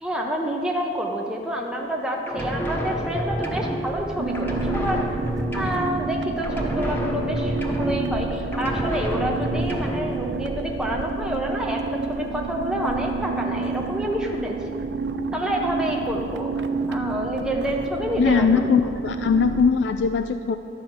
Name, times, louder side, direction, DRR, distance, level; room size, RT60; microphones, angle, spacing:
voice 1, 0.0-5.0 5.5-11.8 12.1-14.6 15.3-16.5 16.9-18.9, equal, 5° right, -1 dB, 0.8 m, -28 dB
sound 1, 2.3-4.1 4.3-6.2 6.4-8.3 8.5-10.2, equal, 10° left, 1.1 m, -29 dB
sound 2, 2.9-13.3, right 1 dB, 20° right, 0.3 m, -39 dB
sound 3, 4.2-19.7, right 4 dB, 80° right, 0.5 m, -30 dB
voice 2, 18.2-20.6, left 5 dB, 80° left, 9 dB, 0.4 m, -20 dB
12.0 x 5.6 x 7.8 m, 2.6 s
head